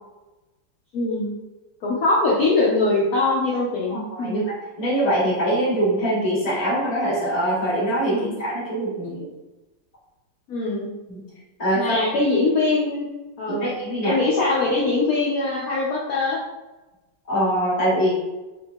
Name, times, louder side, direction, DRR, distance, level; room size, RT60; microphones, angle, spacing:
voice 1, 0.9-1.3 1.8-4.4 8.1-8.4 10.5-10.9 11.7-13.1 13.4-13.7 14.0-16.4, left 3 dB, 70° left, -6 dB, 0.8 m, -22 dB
voice 2, 3.9-9.3 11.1-11.2 11.6-12.0 13.5-14.2 17.3-18.1, right 1 dB, 25° left, -7 dB, 1.1 m, -23 dB
4.2 x 3.5 x 2.3 m, 1.1 s
omnidirectional pair, 2.3 m